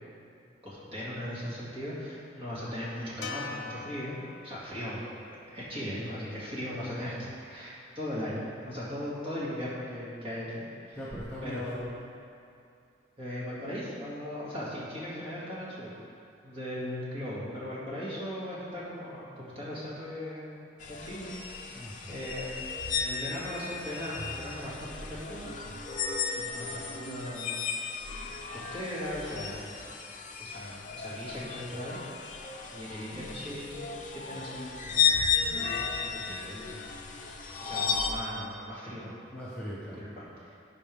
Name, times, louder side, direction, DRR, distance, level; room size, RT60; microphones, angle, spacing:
voice 1, 0.6-4.2 4.4-5.0 5.3-11.0 11.4-11.9 13.2-15.9 16.4-20.5 21.0-21.4 22.1-22.6 22.9-25.6 26.3-27.6 28.5-29.7 30.4-32.0 32.7-33.8 34.1-36.7 37.6-39.2 40.0-40.5, equal, 30° right, -8 dB, 2.4 m, -38 dB
sound 1, 3.2-7.6, left 5 dB, 65° left, 0.9 m, -45 dB
voice 2, 10.9-12.0 21.7-22.2 39.3-40.0, equal, 5° left, -9 dB, 0.9 m, -40 dB
sound 2, 20.8-38.1, left 6 dB, 40° left, 0.6 m, -34 dB
15.5 x 5.3 x 3.6 m, 2.5 s
head